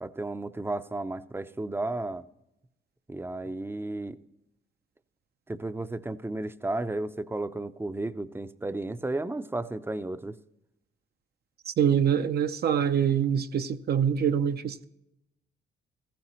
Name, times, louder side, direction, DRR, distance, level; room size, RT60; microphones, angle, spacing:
voice 1, 0.0-2.2 3.1-4.2 5.5-10.4, right 2 dB, 10° right, 0.6 m, -33 dB
voice 2, 11.7-14.8, right 8 dB, 55° right, 0.6 m, -25 dB
16.0 x 14.5 x 3.1 m
cardioid pair, 90°, 20 cm